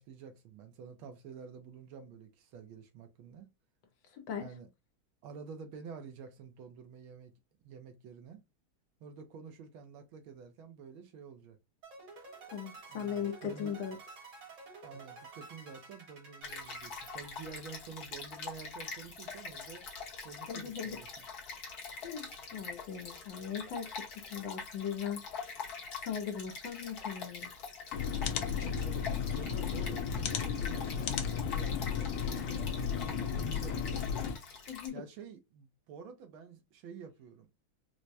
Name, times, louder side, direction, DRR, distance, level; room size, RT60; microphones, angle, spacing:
voice 1, 0.0-3.5 4.4-4.7 5.2-7.3 7.6-8.4 9.0-11.6 12.9-13.8 14.8-21.3 28.4-32.9 33.3-34.0 34.9-37.5, right 6 dB, 80° right, 1.6 m, -49 dB
voice 2, 4.1-4.5 12.5-14.0 20.5-21.0 22.0-25.7 26.0-27.5 34.7-35.0, left 8 dB, 70° left, 1.4 m, -39 dB
sound 1, 11.8-18.1, right 3 dB, 60° right, 2.0 m, -51 dB
Stream, 16.4-34.9, left 4 dB, 55° left, 1.4 m, -44 dB
sound 2, 27.9-34.4, left 7 dB, 85° left, 1.5 m, -34 dB
4.6 x 2.1 x 2.6 m
omnidirectional pair, 2.3 m